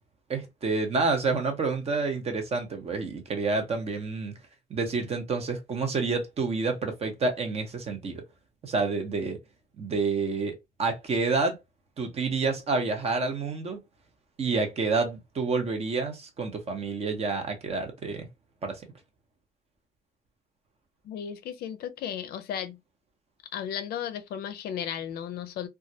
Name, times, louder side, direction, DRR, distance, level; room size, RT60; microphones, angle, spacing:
voice 1, 0.3-4.3 4.7-8.2 8.6-9.4 9.8-11.6 12.0-13.8 14.4-18.3 18.6-18.8, right 4 dB, 35° right, 0.7 m, -28 dB
voice 2, 21.0-22.8 23.5-25.7, left 9 dB, 65° left, 0.4 m, -34 dB
2.3 x 2.0 x 2.6 m
cardioid pair, 110°, 17 cm